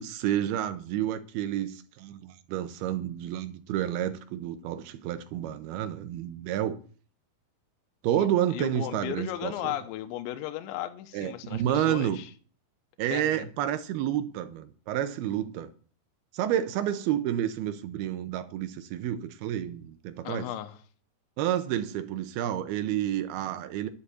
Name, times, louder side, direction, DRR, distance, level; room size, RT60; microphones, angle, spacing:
voice 1, 0.0-6.8 8.0-9.7 11.1-12.2 13.0-15.7 16.3-20.5 21.4-23.9, right 11 dB, 90° right, 2.2 m, -30 dB
voice 2, 8.5-12.3 13.1-13.5 20.2-20.8, left 13 dB, 80° left, 3.2 m, -35 dB
11.5 x 6.8 x 8.2 m
omnidirectional pair, 5.3 m